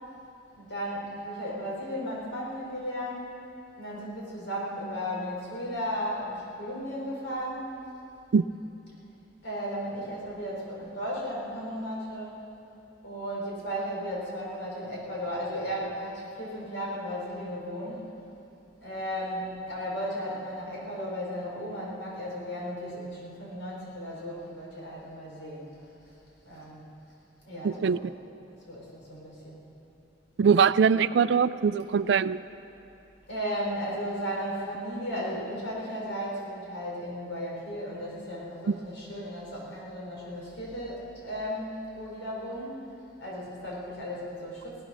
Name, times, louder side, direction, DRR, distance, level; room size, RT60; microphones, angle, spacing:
voice 1, 0.5-3.3 3.8-7.7 9.4-12.4 13.0-18.1 18.8-25.6 26.4-26.8 27.4-28.0 28.7-29.6 33.3-42.9 43.2-44.8, equal, 85° left, -4 dB, 4.6 m, -35 dB
voice 2, 27.6-28.0 30.4-32.4 38.7-38.8, right 6 dB, 65° right, 16 dB, 0.3 m, -22 dB
17.0 x 12.5 x 6.4 m, 2.9 s
head